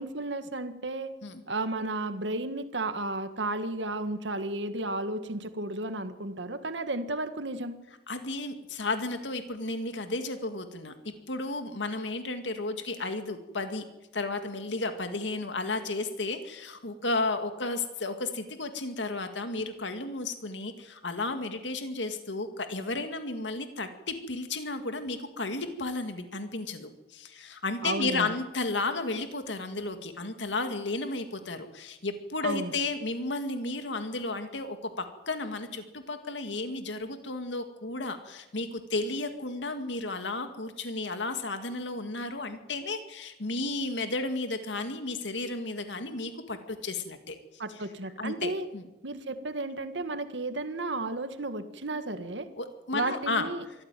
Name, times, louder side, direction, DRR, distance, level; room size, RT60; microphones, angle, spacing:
voice 1, 0.0-1.1 1.5-7.7 27.8-28.3 32.4-32.7 47.6-48.6 49.0-52.5 52.9-53.6, right 2 dB, 80° right, 9 dB, 1.8 m, -33 dB
voice 2, 8.1-10.9 11.3-13.8 14.1-47.4 48.2-48.8 52.6-53.5, left 3 dB, 90° left, 7 dB, 2.1 m, -33 dB
24.5 x 14.5 x 9.2 m, 1.0 s
head